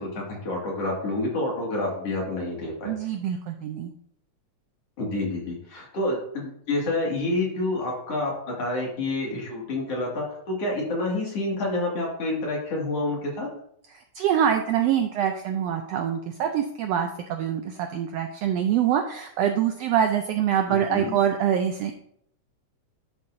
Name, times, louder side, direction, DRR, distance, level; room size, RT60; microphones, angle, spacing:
voice 1, 0.0-2.9 5.0-13.5 20.7-21.1, left 2 dB, 55° left, -2 dB, 3.0 m, -28 dB
voice 2, 2.8-3.9 14.1-21.9, right 9 dB, 80° right, 5 dB, 1.4 m, -25 dB
11.0 x 6.6 x 2.6 m, 0.68 s
omnidirectional pair, 3.5 m